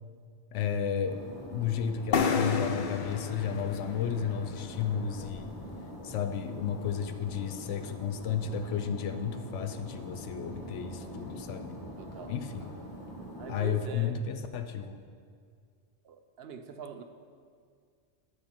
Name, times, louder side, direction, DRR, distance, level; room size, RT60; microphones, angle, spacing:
voice 1, 0.5-1.2 1.5-5.5 6.0-11.8 12.3-12.7 13.5-15.0, left 8 dB, 80° left, 8 dB, 1.0 m, -33 dB
sound 1, 1.0-13.8, equal, 20° left, 1.0 m, -44 dB
sound 2, 2.1-5.8, left 5 dB, 55° left, 0.7 m, -32 dB
voice 2, 12.0-12.4 13.4-14.2 16.0-17.0, right 7 dB, 65° right, 7 dB, 0.8 m, -43 dB
13.0 x 6.0 x 4.3 m, 2.1 s
omnidirectional pair, 1.2 m